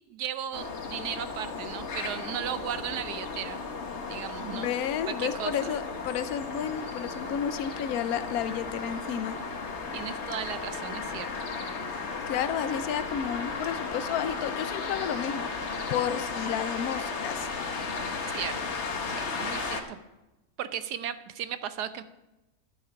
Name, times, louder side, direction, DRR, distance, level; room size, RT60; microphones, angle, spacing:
voice 1, 0.1-3.6 4.1-4.7 5.1-5.5 9.9-11.3 18.3-20.0 20.6-22.0, right 9 dB, 90° right, 12 dB, 1.3 m, -36 dB
sound 1, 0.5-19.8, left 4 dB, 50° left, 1.3 m, -35 dB
voice 2, 4.5-9.4 12.3-15.5 15.9-17.5, left 9 dB, 75° left, 12 dB, 1.1 m, -31 dB
11.5 x 8.3 x 5.8 m, 0.99 s
omnidirectional pair, 1.7 m